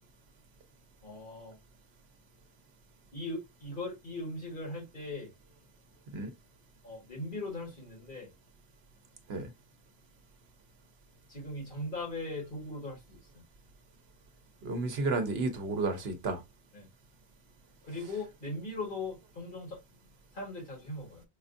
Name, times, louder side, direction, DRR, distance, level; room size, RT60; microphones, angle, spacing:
voice 1, 1.0-1.6 3.1-5.3 6.8-8.3 11.3-13.4 16.7-16.9 17.8-19.8 20.3-21.2, left 2 dB, 50° left, 1.7 m, -39 dB
voice 2, 14.6-16.4, right 3 dB, 75° right, 1.1 m, -32 dB
4.7 x 2.5 x 2.5 m
omnidirectional pair, 1.1 m